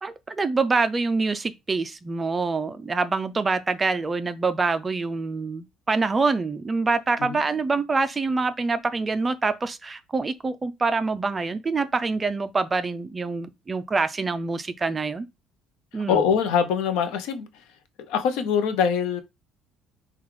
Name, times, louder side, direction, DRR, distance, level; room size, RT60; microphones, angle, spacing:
voice 1, 0.0-15.3 15.9-16.2, right 4 dB, 15° right, 0.3 m, -25 dB
voice 2, 15.9-17.6 18.0-19.2, left 7 dB, 75° left, 0.6 m, -24 dB
5.9 x 2.3 x 3.1 m
cardioid pair, 170°, 0 cm